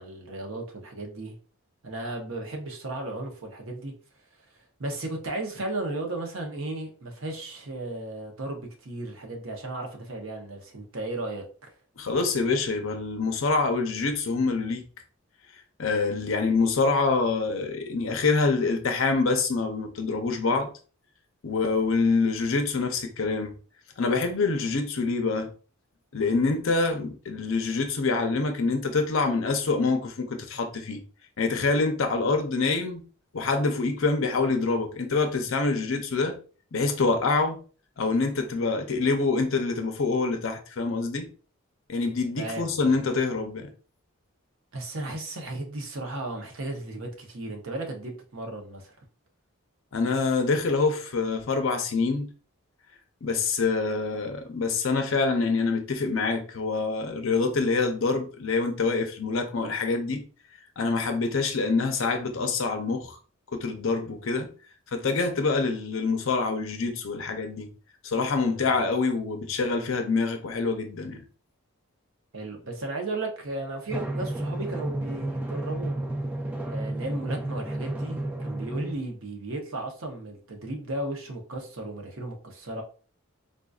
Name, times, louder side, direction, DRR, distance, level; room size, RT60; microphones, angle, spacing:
voice 1, 0.0-1.4 1.8-3.9 4.8-11.4 42.4-43.0 44.7-48.9 68.4-68.8 72.3-76.0 76.7-82.8, right 2 dB, 65° right, 0.8 m, -35 dB
voice 2, 12.0-14.9 15.8-20.7 21.4-23.5 24.0-25.5 26.1-31.0 31.4-33.0 33.3-36.3 36.7-37.6 38.0-41.3 41.9-43.7 49.9-52.3 53.2-60.2 60.8-63.2 63.5-64.5 64.9-67.7 68.0-71.2, left 4 dB, 65° left, 0.6 m, -26 dB
Drum, 73.9-78.9, right 1 dB, 5° right, 0.4 m, -31 dB
3.7 x 2.5 x 2.3 m
head